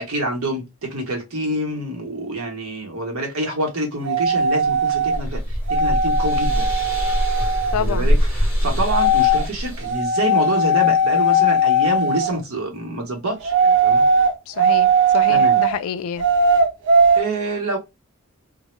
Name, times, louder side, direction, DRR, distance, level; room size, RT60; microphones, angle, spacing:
voice 1, 0.0-6.7 7.7-14.0 15.3-15.6 17.2-17.8, right 1 dB, 85° right, 0.9 m, -26 dB
sound 1, 4.0-5.2 5.7-7.8 8.9-9.5 9.8-12.4 13.4-15.7 16.2-17.2, right 1 dB, 55° right, 0.5 m, -18 dB
sound 2, 4.7-10.0, equal, 10° right, 0.9 m, -23 dB
voice 2, 7.7-8.1 14.5-16.3, left 7 dB, 85° left, 0.3 m, -28 dB
2.1 x 2.0 x 3.0 m
head